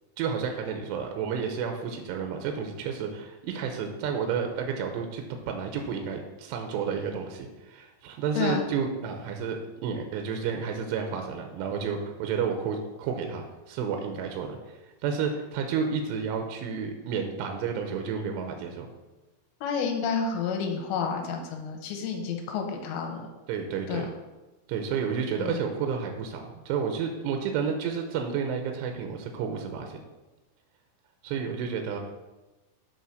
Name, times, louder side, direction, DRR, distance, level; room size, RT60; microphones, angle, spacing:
voice 1, 0.2-14.8 15.0-18.9 23.5-24.1 24.7-30.0 31.2-32.0, right 6 dB, 80° right, 4 dB, 2.5 m, -31 dB
voice 2, 19.6-23.2 23.9-24.1 25.4-25.6, left 6 dB, 75° left, 2 dB, 2.9 m, -30 dB
8.5 x 4.0 x 6.3 m, 1.1 s
omnidirectional pair, 5.8 m